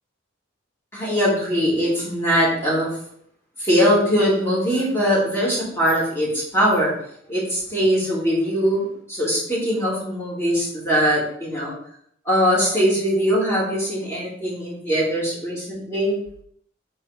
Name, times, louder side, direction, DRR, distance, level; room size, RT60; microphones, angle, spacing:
voice 1, 0.9-2.9 3.6-6.9 7.3-11.7 12.3-16.1, equal, 15° left, -6 dB, 2.5 m, -21 dB
4.6 x 4.0 x 5.7 m, 0.68 s
head